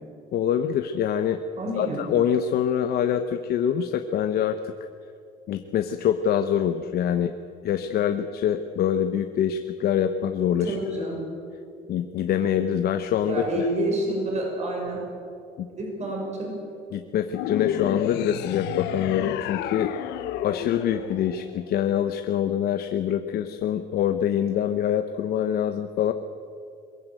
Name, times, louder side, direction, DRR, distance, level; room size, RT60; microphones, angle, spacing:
voice 1, 0.3-1.4 1.8-4.7 5.5-7.3 7.6-10.8 11.9-13.7 15.6-15.7 16.9-19.9 20.4-26.1, left 9 dB, 65° left, 8 dB, 1.0 m, -25 dB
voice 2, 1.6-2.0 10.6-11.2 13.3-15.0 15.7-16.6, right 1 dB, 40° right, 0 dB, 7.0 m, -28 dB
sound 1, 17.3-21.8, left 11 dB, 90° left, 1.1 m, -31 dB
22.0 x 15.5 x 9.2 m, 2.4 s
cardioid pair, 110°, 17 cm